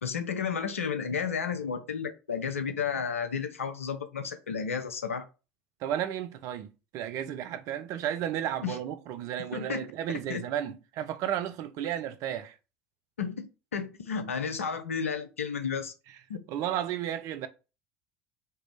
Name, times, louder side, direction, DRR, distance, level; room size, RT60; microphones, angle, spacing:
voice 1, 0.0-5.3 8.6-8.8 9.5-9.8 10.3-10.4 13.2-15.9 16.3-16.4, left 6 dB, 85° left, 0.6 m, -32 dB
voice 2, 5.8-12.6 16.5-17.5, right 10 dB, 50° right, 0.6 m, -33 dB
4.5 x 3.0 x 3.3 m
figure-of-eight pair, 70°, 7 cm